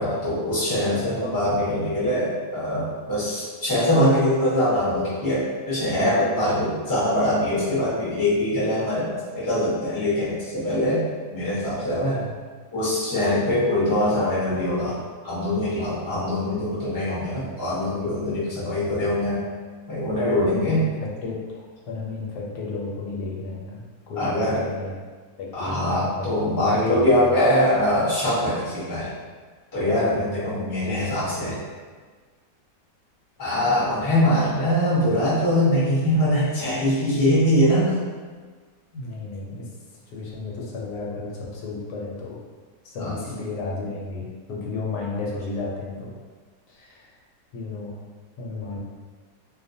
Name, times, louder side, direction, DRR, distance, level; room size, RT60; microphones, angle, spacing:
voice 1, 0.0-11.1 11.3-12.2 12.7-19.4 19.9-20.9 24.1-24.6 25.5-29.1 29.7-31.6 33.4-38.0 43.0-43.1, left 1 dB, 15° left, -10 dB, 0.7 m, -23 dB
voice 2, 20.4-24.9 25.4-27.3 30.1-30.4 38.9-39.7 40.1-42.4 42.8-46.2 46.7-47.2 47.5-48.0 48.4-48.8, left 3 dB, 85° left, -2 dB, 1.2 m, -33 dB
2.6 x 2.2 x 2.6 m, 1.5 s
omnidirectional pair, 1.7 m